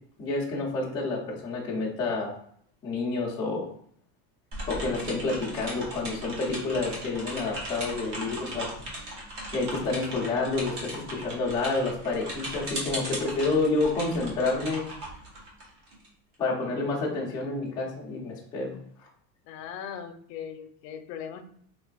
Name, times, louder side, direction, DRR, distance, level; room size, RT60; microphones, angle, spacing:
voice 1, 0.2-2.4 2.8-3.7 4.7-8.7 9.5-14.8 16.4-18.7, left 3 dB, 10° left, -6 dB, 0.4 m, -29 dB
sound 1, 4.5-16.1, right 1 dB, 45° right, 1.1 m, -38 dB
voice 2, 19.4-21.4, left 8 dB, 90° left, 8 dB, 0.6 m, -39 dB
3.3 x 3.2 x 2.2 m, 0.63 s
cardioid pair, 165°, 48 cm